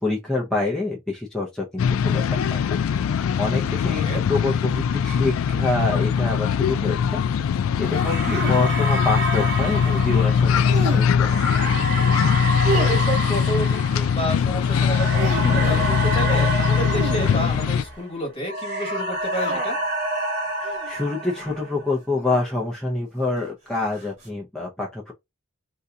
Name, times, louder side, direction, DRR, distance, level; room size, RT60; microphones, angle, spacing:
voice 1, 0.0-7.2 7.8-11.4 20.5-25.1, left 2 dB, 5° left, 0.6 m, -27 dB
sound 1, 1.8-17.8, left 7 dB, 70° left, 0.3 m, -21 dB
voice 2, 3.8-4.2 12.7-19.8, equal, 25° left, 1.4 m, -30 dB
sound 2, 7.9-18.1 18.4-21.9, right 1 dB, 55° right, 1.3 m, -29 dB
sound 3, 8.3-8.8 10.6-11.3 12.6-13.4 14.9-16.0 16.8-18.0 19.3-19.9 20.6-20.9 22.2-22.7 23.9-24.3, right 3 dB, 35° right, 1.2 m, -32 dB
2.7 x 2.2 x 3.7 m
head